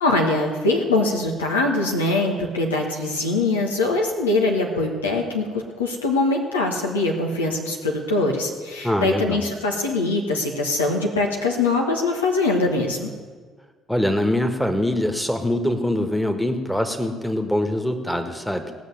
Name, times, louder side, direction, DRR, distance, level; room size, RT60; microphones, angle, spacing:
voice 1, 0.0-13.1, left 2 dB, 85° left, 0 dB, 1.3 m, -22 dB
voice 2, 8.8-9.4 13.9-18.7, left 1 dB, 5° left, 5 dB, 1.6 m, -23 dB
17.5 x 6.3 x 7.8 m, 1.5 s
figure-of-eight pair, 50°, 0 cm